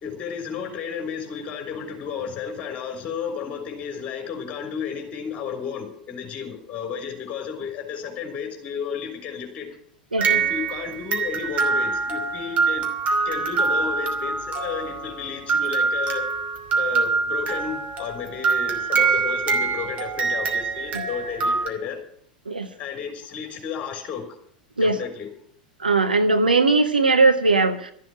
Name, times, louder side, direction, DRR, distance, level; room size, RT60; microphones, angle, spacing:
voice 1, 0.0-9.7 10.3-12.9 13.2-16.3 16.8-22.0 22.8-24.2 24.8-25.3, left 7 dB, 30° left, 3 dB, 3.7 m, -32 dB
sound 1, 10.2-21.7, right 4 dB, 30° right, 2.9 m, -24 dB
voice 2, 25.8-27.9, right 3 dB, 80° right, 7 dB, 1.2 m, -19 dB
13.5 x 7.6 x 9.9 m, 0.63 s
figure-of-eight pair, 85°, 5 cm